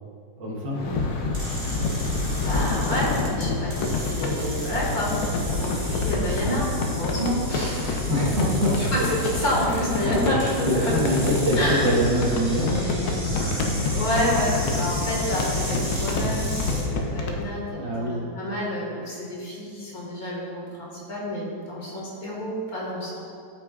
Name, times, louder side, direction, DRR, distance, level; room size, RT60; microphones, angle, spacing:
voice 1, 0.4-1.0 8.1-9.1 9.8-13.1 17.7-18.3, equal, 70° right, -4 dB, 2.1 m, -25 dB
sound 1, 0.7-17.4, left 3 dB, 75° left, 1.5 m, -27 dB
sound 2, 1.3-16.9, right 1 dB, 35° right, 2.1 m, -36 dB
voice 2, 2.4-5.1 5.5-8.0 8.8-10.9 11.6-11.9 13.3-23.2, equal, 50° left, -5 dB, 2.2 m, -29 dB
13.0 x 5.8 x 2.4 m, 2.6 s
omnidirectional pair, 2.0 m